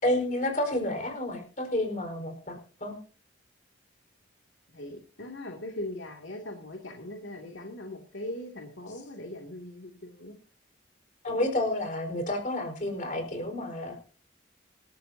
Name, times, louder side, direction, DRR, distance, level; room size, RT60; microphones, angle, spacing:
voice 1, 0.0-3.0 11.2-14.0, left 1 dB, 40° left, 5 dB, 4.5 m, -30 dB
voice 2, 4.7-10.4, left 1 dB, 85° left, 2 dB, 2.5 m, -40 dB
27.0 x 13.5 x 2.8 m, 0.39 s
head